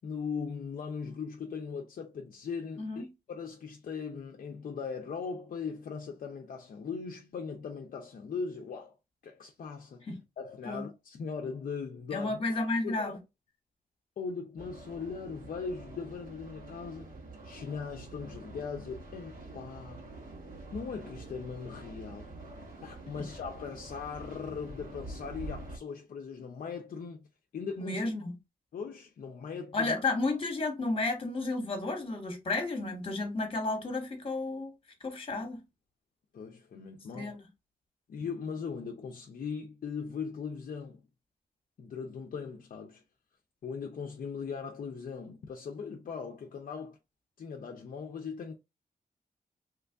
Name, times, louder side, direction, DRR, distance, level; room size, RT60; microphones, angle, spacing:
voice 1, 0.0-9.0 9.2-10.1 10.4-12.4 12.8-13.2 14.2-17.1 17.4-20.0 20.7-22.3 22.8-27.2 27.5-28.0 28.7-30.0 36.3-37.4 38.1-41.0 41.8-43.0 43.6-47.0 47.4-48.5, left 5 dB, 60° left, 0.5 m, -39 dB
voice 2, 2.8-3.1 10.1-10.2 10.6-10.9 12.1-13.2 23.2-23.3 27.8-28.3 29.7-34.7 35.0-35.6 37.1-37.4, left 2 dB, 35° left, 1.2 m, -32 dB
sound 1, 14.6-25.8, right 2 dB, 60° right, 1.6 m, -46 dB
3.1 x 2.4 x 3.4 m
wide cardioid pair, 115°, 16 cm